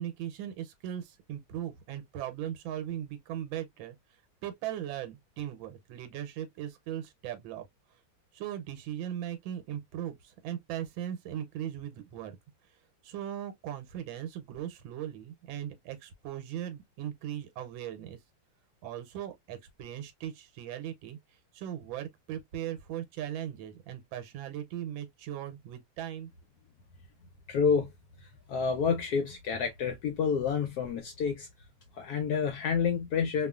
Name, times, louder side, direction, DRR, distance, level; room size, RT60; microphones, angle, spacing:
voice 1, 0.0-4.0 4.4-7.6 8.3-12.4 12.7-12.8 13.0-18.2 18.8-21.2 21.5-26.3, right 11 dB, 90° right, 1.4 m, -38 dB
voice 2, 27.5-27.9 28.2-31.5 31.9-33.5, left 6 dB, 70° left, 0.9 m, -29 dB
2.9 x 2.3 x 2.3 m
omnidirectional pair, 2.1 m